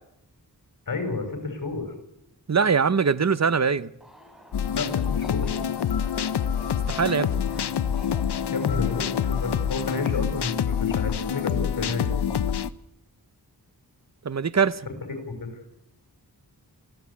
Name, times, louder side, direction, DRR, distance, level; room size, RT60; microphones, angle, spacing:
voice 1, 0.9-1.9 4.7-5.6 8.5-12.1 14.9-15.5, left 3 dB, 55° left, 6.4 m, -31 dB
voice 2, 2.5-3.9 6.9-7.4 14.2-14.8, right 6 dB, 40° right, 0.9 m, -22 dB
Subway metro underground, 4.0-10.0, left 1 dB, ahead, 5.2 m, -47 dB
sound 1, 4.5-12.7, left 8 dB, 85° left, 0.8 m, -26 dB
25.5 x 16.0 x 8.5 m
wide cardioid pair, 65°, 39 cm